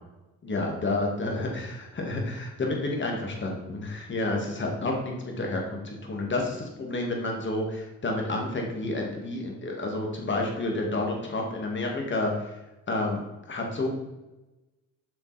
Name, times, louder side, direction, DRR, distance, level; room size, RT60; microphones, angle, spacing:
voice 1, 0.4-12.6 12.9-13.2 13.5-13.9, left 2 dB, 40° left, 1 dB, 2.3 m, -30 dB
7.7 x 5.7 x 4.3 m, 1.0 s
cardioid pair, 90°, 30 cm